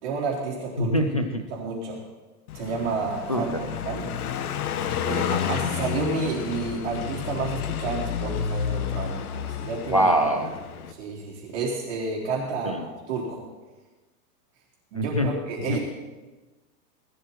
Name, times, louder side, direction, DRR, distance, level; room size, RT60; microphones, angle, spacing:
voice 1, 0.0-0.9 1.5-2.0 2.5-4.1 5.0-10.1 10.9-13.4 14.9-15.8, right 4 dB, 40° right, -8 dB, 4.1 m, -30 dB
voice 2, 0.8-1.4 3.3-3.6 9.9-10.5 12.6-12.9 14.9-15.3 15.7-15.8, equal, 25° left, 5 dB, 0.4 m, -24 dB
Car passing by, 2.5-10.9, left 8 dB, 60° left, 1.3 m, -30 dB
19.0 x 13.0 x 4.4 m, 1.2 s
supercardioid pair, 180°, 49 cm